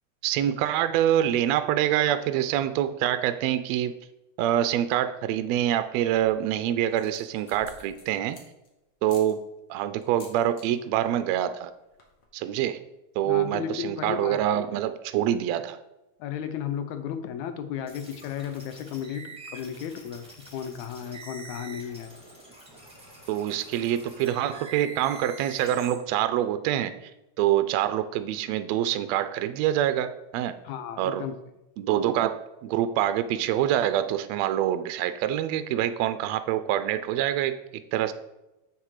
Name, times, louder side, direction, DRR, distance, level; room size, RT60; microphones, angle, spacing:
voice 1, 0.2-4.0 4.4-8.4 9.0-9.4 9.7-11.7 12.3-12.8 13.2-15.8 23.3-26.9 27.4-30.5 31.0-31.2 31.8-32.4 32.6-37.6 37.9-38.1, right 11 dB, 80° right, 11 dB, 1.6 m, -25 dB
sound 1, 5.9-6.4 6.9-8.7 9.1-9.3 10.0-10.7 10.9-11.3 11.5-11.6 11.8-12.2, left 3 dB, 50° left, 1.8 m, -50 dB
voice 2, 13.2-14.6 16.2-22.1 30.6-31.3, left 8 dB, 75° left, 9 dB, 2.0 m, -34 dB
sound 2, 17.9-25.9, right 3 dB, ahead, 1.7 m, -46 dB
7.3 x 6.8 x 4.8 m, 0.94 s
omnidirectional pair, 3.5 m